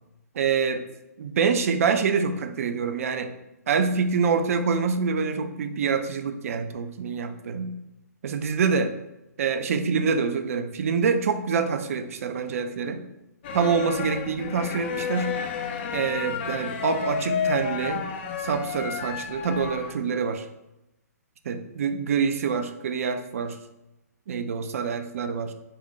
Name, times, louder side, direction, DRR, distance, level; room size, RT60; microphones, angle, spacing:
voice 1, 0.4-0.8 1.2-3.3 3.7-7.7 8.2-8.9 9.4-13.0 13.5-15.3 15.9-18.1 18.4-20.5 21.5-23.6 24.3-25.5, right 5 dB, 55° right, 9 dB, 0.4 m, -26 dB
sound 1, 13.4-19.9, left 6 dB, 40° left, 0.4 m, -31 dB
3.8 x 2.1 x 4.0 m, 0.94 s
figure-of-eight pair, 125°, 9 cm